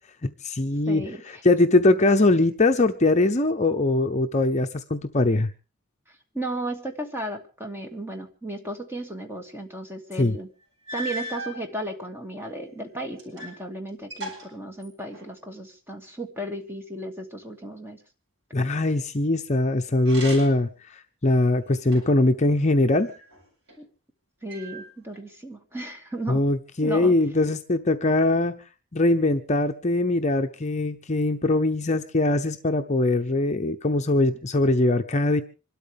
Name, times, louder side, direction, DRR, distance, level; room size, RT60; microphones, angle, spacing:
voice 1, 0.2-5.5 10.2-10.4 18.5-23.1 26.3-28.6 28.9-35.4, left 2 dB, 35° left, 5 dB, 0.8 m, -22 dB
voice 2, 0.9-1.2 6.3-10.5 10.9-18.0 23.8-23.9 24.4-26.4 26.8-27.1, right 1 dB, 10° right, 3 dB, 2.4 m, -34 dB
sound 1, 10.3-10.4 10.9-11.6 12.4-13.6 13.9-15.4 20.0-20.7 21.3-22.3 23.0-23.8 24.5-25.2, right 1 dB, 60° right, 7.9 m, -38 dB
26.0 x 12.5 x 3.6 m, 0.34 s
head